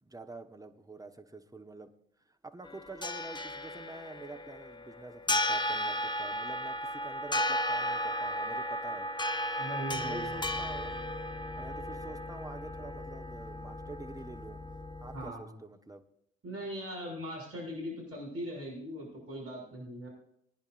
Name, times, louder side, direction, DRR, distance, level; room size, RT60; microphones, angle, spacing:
voice 1, 0.0-1.9 2.3-9.1 10.0-11.0 11.6-14.6 15.0-16.0, right 2 dB, 10° right, 7 dB, 1.4 m, -47 dB
sound 1, 2.6-15.3, left 1 dB, 15° left, 1.3 m, -35 dB
voice 2, 9.6-10.3 15.1-15.6 16.4-20.1, equal, 45° right, -2 dB, 6.5 m, -40 dB
22.0 x 10.5 x 2.6 m, 0.72 s
hypercardioid pair, 45°, 32 cm